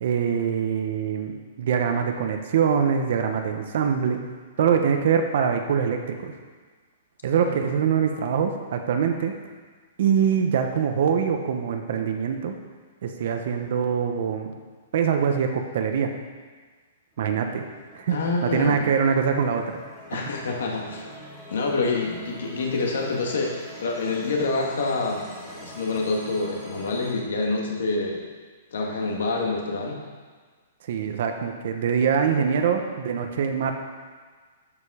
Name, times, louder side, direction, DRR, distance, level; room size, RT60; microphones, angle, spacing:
voice 1, 0.0-4.2 4.6-6.3 7.2-9.3 10.0-12.5 13.0-14.5 14.9-16.1 17.2-17.6 17.9-19.6 30.9-33.7, right 7 dB, 50° right, 5 dB, 0.8 m, -24 dB
sound 1, 17.1-27.1, right 1 dB, 5° left, 1.4 m, -44 dB
voice 2, 18.1-18.8 20.1-21.1 21.5-28.3 28.7-30.0, left 3 dB, 80° left, 0 dB, 1.7 m, -27 dB
12.5 x 5.0 x 4.9 m, 1.5 s
hypercardioid pair, 170°, 0 cm